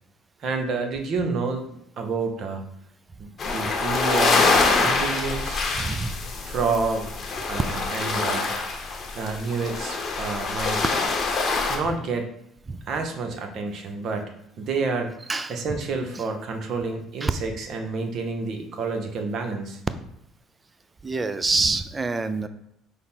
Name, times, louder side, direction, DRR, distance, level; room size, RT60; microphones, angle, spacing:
voice 1, 0.4-1.7 2.0-2.6 3.2-5.7 6.4-7.1 7.5-8.5 9.1-10.8 11.7-12.3 12.9-14.3 14.6-15.1 15.5-19.8, right 4 dB, 60° right, 4 dB, 0.7 m, -29 dB
sound 1, 3.4-11.8, left 3 dB, 40° left, 0.8 m, -25 dB
voice 2, 5.7-6.1 12.7-12.8 15.3-15.6 17.2-17.3 21.0-22.5, right 3 dB, 20° right, 11 dB, 0.3 m, -26 dB
5.0 x 2.0 x 4.3 m, 0.77 s
supercardioid pair, 90°, 0 cm